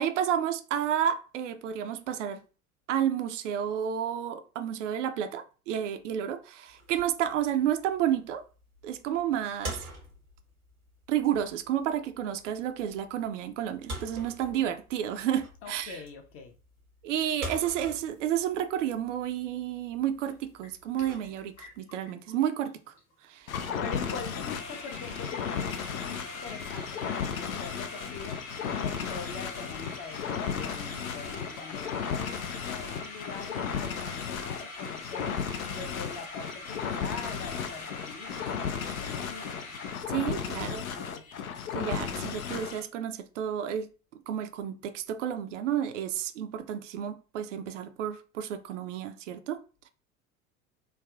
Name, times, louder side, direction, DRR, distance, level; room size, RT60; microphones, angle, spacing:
voice 1, 0.0-2.4 2.9-8.4 8.8-9.9 11.1-16.0 17.0-22.9 23.2-23.5 40.1-40.9 41.7-43.9 44.3-49.6, right 10 dB, 60° right, 0.5 m, -31 dB
sound 1, 6.7-21.8, right 1 dB, 90° right, 1.0 m, -46 dB
voice 2, 15.6-16.5 23.6-28.4 28.8-35.4 35.7-39.7 40.4-41.2, left 5 dB, 30° left, 0.6 m, -43 dB
sound 2, 20.2-20.3 20.6-22.4 22.7-22.8 22.9-23.2 23.5-23.6 24.0-24.1 24.2-39.9, left 3 dB, 55° left, 1.4 m, -44 dB
sound 3, 23.5-42.9, left 7 dB, 75° left, 0.5 m, -35 dB
3.3 x 2.3 x 2.3 m
figure-of-eight pair, 75°, 42 cm